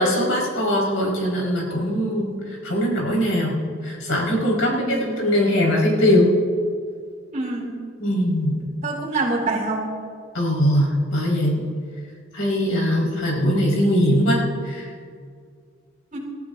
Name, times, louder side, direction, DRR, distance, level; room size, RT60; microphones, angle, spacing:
voice 1, 0.0-2.4 2.6-3.6 3.8-6.3 8.0-8.6 10.3-11.6 12.3-14.4, equal, 85° left, -3 dB, 4.9 m, -21 dB
voice 2, 4.7-5.2 7.3-7.7 8.8-9.9 16.1-16.2, right 2 dB, 40° right, -1 dB, 4.1 m, -26 dB
29.0 x 14.5 x 2.7 m, 2.2 s
head